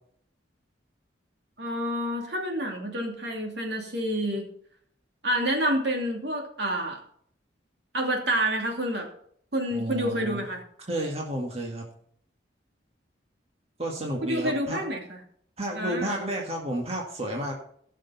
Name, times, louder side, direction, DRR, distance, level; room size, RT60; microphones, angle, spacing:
voice 1, 1.6-4.5 5.2-7.0 7.9-9.1 9.5-10.6 14.2-15.2 15.7-16.2, right 1 dB, 65° right, 1 dB, 2.8 m, -28 dB
voice 2, 9.7-10.4 10.9-11.9 13.8-14.8 15.6-17.5, right 1 dB, 35° right, 0 dB, 1.9 m, -31 dB
16.5 x 6.5 x 4.2 m, 0.63 s
head